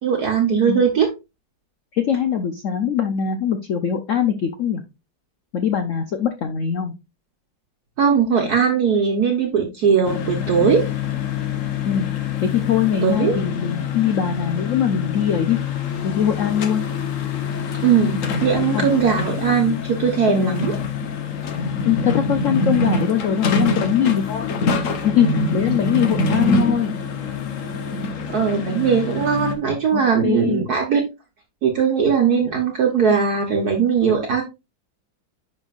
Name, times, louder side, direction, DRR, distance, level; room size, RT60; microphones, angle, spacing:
voice 1, 0.0-1.1 8.0-10.8 13.0-13.4 17.8-20.8 28.3-31.0 31.6-34.4, right 6 dB, 60° right, 1 dB, 1.4 m, -19 dB
voice 2, 1.9-4.8 5.5-6.9 11.9-12.1 12.4-15.6 16.0-16.8 18.7-18.9 20.3-20.6 21.8-24.5 25.0-27.0 29.9-30.7, left 8 dB, 70° left, 8 dB, 0.7 m, -22 dB
sound 1, 10.0-29.6, left 4 dB, 50° left, 1.1 m, -25 dB
10.5 x 4.4 x 2.4 m, 0.25 s
omnidirectional pair, 2.1 m